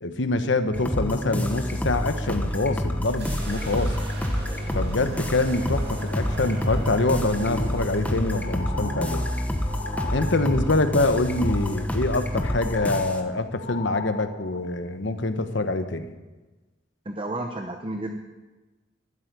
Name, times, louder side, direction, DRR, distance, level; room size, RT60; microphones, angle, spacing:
voice 1, 0.0-4.0 4.7-9.4 10.1-16.1, left 2 dB, 70° left, 9 dB, 1.1 m, -25 dB
sound 1, 0.7-13.2, equal, 10° left, 1.0 m, -28 dB
sound 2, 3.0-10.7, right 1 dB, 60° right, 2.4 m, -41 dB
sound 3, 7.2-10.9 11.2-11.9 12.2-14.6 15.2-15.3, left 4 dB, 45° left, 1.2 m, -38 dB
voice 2, 17.0-18.2, right 1 dB, 25° right, 5 dB, 0.9 m, -31 dB
12.5 x 8.1 x 9.4 m, 1.2 s
head